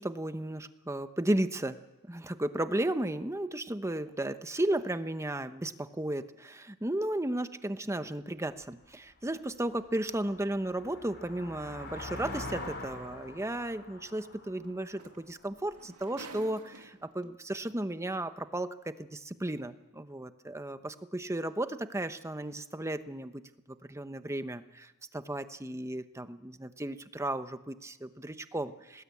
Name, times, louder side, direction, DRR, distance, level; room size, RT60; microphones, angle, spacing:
voice 1, 0.0-1.8 2.1-23.4 23.8-29.0, right 1 dB, 15° right, 10 dB, 1.0 m, -34 dB
sound 1, 8.6-8.7 9.2-15.8, left 2 dB, 50° left, 4.5 m, -44 dB
sound 2, 12.8-12.9 14.6-14.7 15.0-17.2 18.2-18.3, right 3 dB, 85° right, 2.1 m, -50 dB
27.0 x 19.5 x 8.4 m, 1.0 s
head